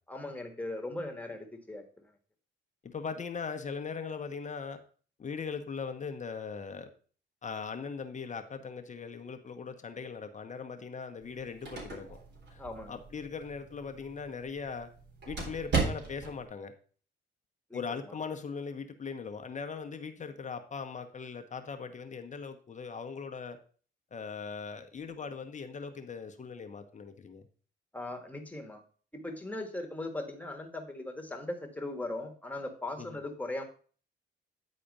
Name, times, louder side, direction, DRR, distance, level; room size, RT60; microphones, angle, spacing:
voice 1, 0.1-1.8 12.6-13.0 17.7-17.8 27.9-28.8 29.1-33.6, left 2 dB, 5° left, 4 dB, 1.7 m, -39 dB
voice 2, 2.8-4.8 5.2-6.9 7.4-12.2 12.5-14.9 15.3-16.7 17.7-23.6 24.1-27.4 33.0-33.2, left 5 dB, 40° left, 6 dB, 1.1 m, -40 dB
sound 1, 11.2-16.4, right 4 dB, 60° right, 3.7 m, -37 dB
10.0 x 4.2 x 5.3 m, 0.41 s
cardioid pair, 90°, 20 cm